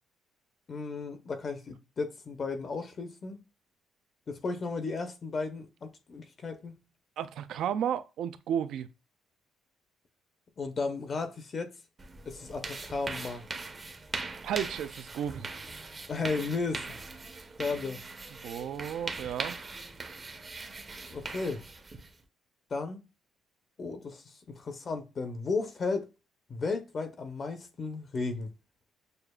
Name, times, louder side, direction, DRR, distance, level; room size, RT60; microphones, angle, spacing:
voice 1, 0.7-3.4 4.3-6.8 10.6-11.7 12.3-13.4 16.1-16.9 17.6-18.0 21.1-21.6 22.7-23.0 23.8-26.1 26.5-28.5, left 4 dB, 35° left, 0.6 m, -34 dB
voice 2, 7.2-8.9 14.4-15.5 18.4-19.6, right 9 dB, 70° right, 0.4 m, -33 dB
sound 1, 12.0-22.2, right 3 dB, 25° right, 0.6 m, -41 dB
6.6 x 2.4 x 2.2 m
cardioid pair, 135°, 0 cm